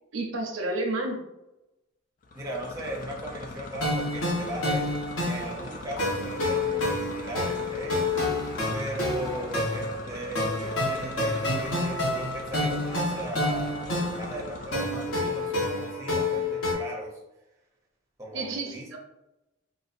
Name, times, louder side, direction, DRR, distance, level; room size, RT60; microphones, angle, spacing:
voice 1, 0.1-1.2 18.3-19.0, right 2 dB, 75° right, 2 dB, 0.6 m, -30 dB
sound 1, 2.2-15.6, left 3 dB, 40° left, 0.3 m, -42 dB
voice 2, 2.3-5.0 5.2-8.1 8.7-17.2 18.2-18.9, right 1 dB, 15° right, -3 dB, 0.5 m, -37 dB
sound 2, 3.8-16.7, left 2 dB, 75° left, 1.0 m, -29 dB
3.9 x 2.2 x 2.5 m, 0.95 s
head